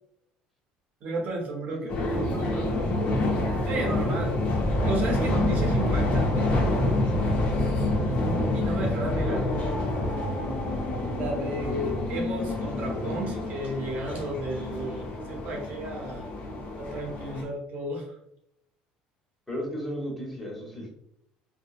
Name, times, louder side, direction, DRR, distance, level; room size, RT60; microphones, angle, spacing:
voice 1, 1.0-1.8 3.6-4.4 4.8-6.5 8.5-9.4 11.1-16.3 16.8-18.1, right 1 dB, 55° right, 1 dB, 0.6 m, -33 dB
voice 2, 1.7-3.1 9.2-9.4 10.5-10.7 19.5-20.9, equal, 5° left, -2 dB, 1.1 m, -35 dB
sound 1, 1.9-17.4, left 1 dB, 50° left, 0.7 m, -27 dB
2.8 x 2.0 x 2.4 m, 0.77 s
supercardioid pair, 85°, 3 cm